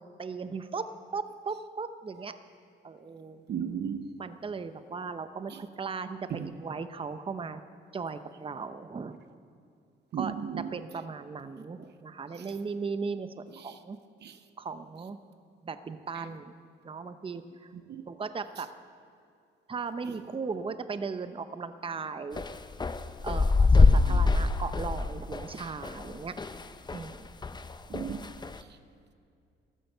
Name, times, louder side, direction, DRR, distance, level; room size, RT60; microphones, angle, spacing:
voice 1, 0.2-2.4 2.8-3.4 4.2-7.6 7.9-9.2 10.1-14.0 14.6-15.2 15.6-16.5 16.8-17.7 18.1-18.7 19.7-22.4 23.2-26.4 26.9-27.3, right 5 dB, 25° right, 0.8 m, -37 dB
voice 2, 3.5-4.1 10.1-10.7 14.2-14.3 17.9-18.0 27.9-28.3, right 8 dB, 60° right, 0.8 m, -34 dB
sound 1, 22.4-27.1 27.4-28.6, left 3 dB, 20° left, 0.7 m, -24 dB
14.0 x 13.5 x 6.7 m
cardioid pair, 90°, 20 cm